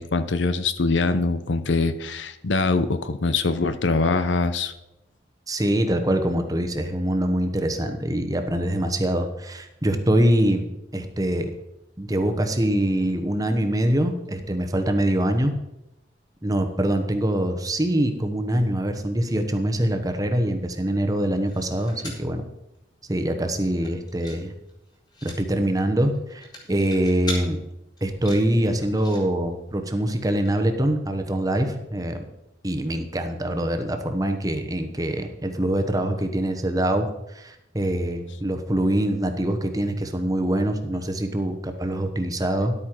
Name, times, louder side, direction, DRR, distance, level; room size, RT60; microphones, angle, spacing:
voice 1, 0.0-4.7, left 3 dB, 75° left, 12 dB, 0.7 m, -23 dB
voice 2, 5.5-10.6 10.9-11.5 12.0-15.5 16.4-22.4 23.1-24.5 25.2-27.6 28.0-32.3 32.6-42.7, right 1 dB, 20° right, 6 dB, 1.0 m, -24 dB
sound 1, 21.2-22.3 22.7-22.8 23.1-23.4 23.7-24.4 24.7-25.4 26.1-27.4 28.0-29.2 30.1-30.2 30.5-30.6, left 1 dB, 20° left, 2.4 m, -39 dB
11.0 x 8.7 x 4.6 m, 0.89 s
head